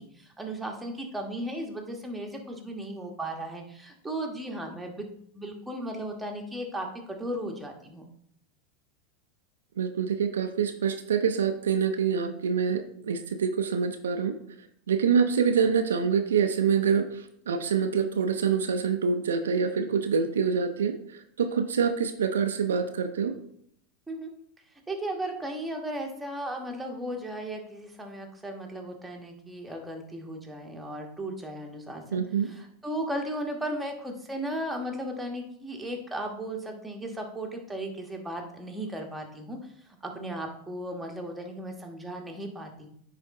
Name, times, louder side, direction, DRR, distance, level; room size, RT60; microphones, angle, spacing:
voice 1, 0.0-5.0 5.3-8.0 24.1-24.3 24.9-42.9, right 1 dB, 5° right, 1 dB, 1.3 m, -36 dB
voice 2, 9.8-14.4 14.9-17.1 17.5-21.0 21.4-23.4 32.1-32.5, right 6 dB, 80° right, 7 dB, 0.5 m, -26 dB
9.5 x 3.3 x 3.6 m, 0.68 s
hypercardioid pair, 95°, 0 cm